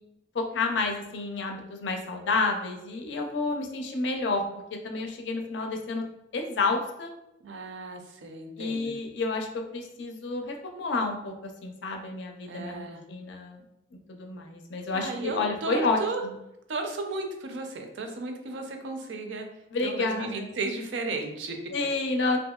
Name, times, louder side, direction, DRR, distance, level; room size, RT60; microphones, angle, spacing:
voice 1, 0.3-4.4 4.7-6.0 6.3-7.1 8.6-13.6 14.1-16.3 19.7-20.5 21.7-22.4, left 3 dB, 65° left, 3 dB, 0.4 m, -30 dB
voice 2, 7.4-8.9 12.5-13.0 14.9-16.2 16.7-19.5 19.8-21.6, right 3 dB, 70° right, 4 dB, 0.4 m, -34 dB
2.8 x 2.6 x 2.3 m, 0.86 s
head